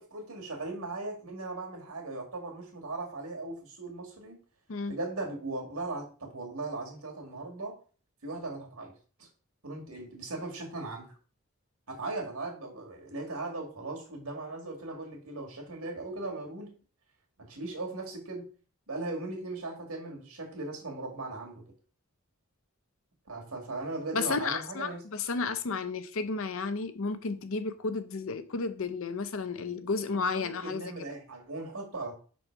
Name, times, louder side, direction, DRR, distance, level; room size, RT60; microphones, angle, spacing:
voice 1, 0.1-4.4 4.9-7.8 8.2-8.9 9.2-9.3 9.6-11.1 11.9-16.7 17.4-18.5 18.9-21.6 23.3-25.0 29.7-32.1, right 2 dB, 80° right, 2.0 m, -38 dB
voice 2, 24.1-30.8, left 4 dB, 65° left, 0.6 m, -32 dB
5.5 x 4.3 x 4.5 m
head